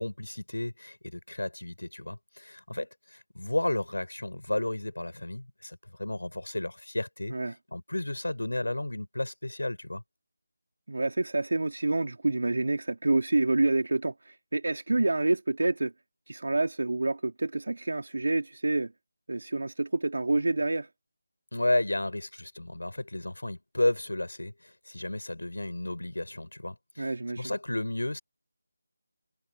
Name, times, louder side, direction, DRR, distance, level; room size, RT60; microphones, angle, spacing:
voice 1, 0.0-7.4 7.7-10.0 21.5-28.2, left 1 dB, 75° left, 5.3 m, -32 dB
voice 2, 10.9-15.9 16.3-18.9 19.3-20.9 27.0-27.5, right 2 dB, 60° right, 3.0 m, -28 dB
figure-of-eight pair, 160°, 0 cm